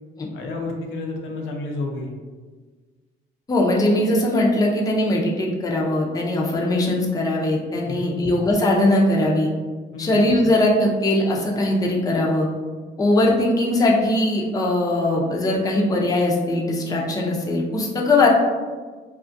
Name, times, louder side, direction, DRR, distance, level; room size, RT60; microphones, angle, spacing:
voice 1, 0.3-2.1 7.8-8.2 9.9-10.2, left 2 dB, 80° left, 1 dB, 0.5 m, -30 dB
voice 2, 3.5-9.5 10.0-12.5 13.0-18.3, left 1 dB, 20° left, -2 dB, 0.4 m, -20 dB
2.3 x 2.1 x 2.5 m, 1.4 s
cardioid pair, 90°, 20 cm